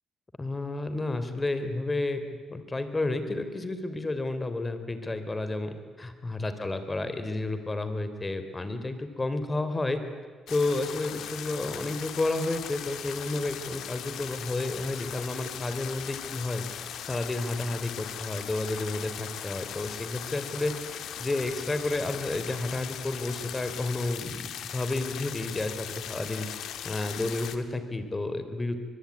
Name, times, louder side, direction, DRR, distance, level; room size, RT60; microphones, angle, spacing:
voice 1, 0.4-2.2 2.5-10.0 10.5-16.6 17.1-26.5 26.8-28.8, left 2 dB, 20° left, 9 dB, 3.5 m, -31 dB
sound 1, 10.5-27.6, left 9 dB, 75° left, 1.9 m, -39 dB
24.0 x 22.0 x 9.6 m, 1.4 s
cardioid pair, 90°, 0 cm